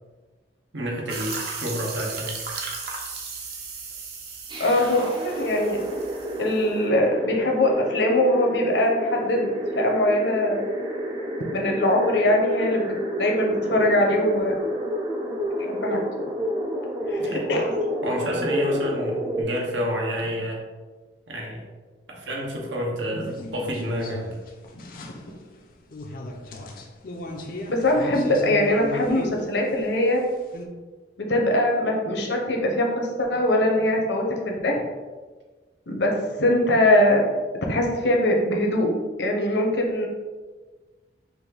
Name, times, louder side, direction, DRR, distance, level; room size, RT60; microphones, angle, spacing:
voice 1, 0.7-2.4 17.2-17.5 18.0-20.6 21.3-21.6 22.1-24.2, equal, 85° right, -1 dB, 1.1 m, -29 dB
sound 1, 1.1-6.7, right 4 dB, 60° right, 0.8 m, -36 dB
sound 2, 4.5-19.4, equal, 25° right, 0.5 m, -29 dB
voice 2, 4.6-5.8 6.4-10.6 11.5-14.6 15.6-16.0 17.1-17.7 23.1-23.3 27.7-30.2 31.3-34.8 35.9-37.2 37.7-38.9 39.2-40.1, left 1 dB, 70° left, 0 dB, 0.9 m, -22 dB
sound 3, 23.2-30.7, left 1 dB, 50° left, 0.5 m, -37 dB
5.3 x 2.6 x 3.8 m, 1.3 s
head